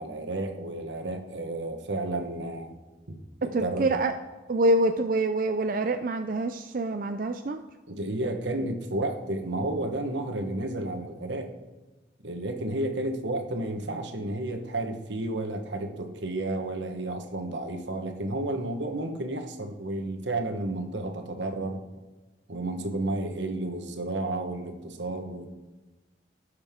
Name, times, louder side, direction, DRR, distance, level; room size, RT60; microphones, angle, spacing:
voice 1, 0.0-2.8 3.1-3.9 7.9-11.5 12.2-21.8 22.5-25.5, right 2 dB, 85° right, 5 dB, 1.2 m, -32 dB
voice 2, 3.5-4.1 4.5-7.6, right 1 dB, 50° right, 7 dB, 0.4 m, -26 dB
17.5 x 6.6 x 3.7 m, 1.2 s
head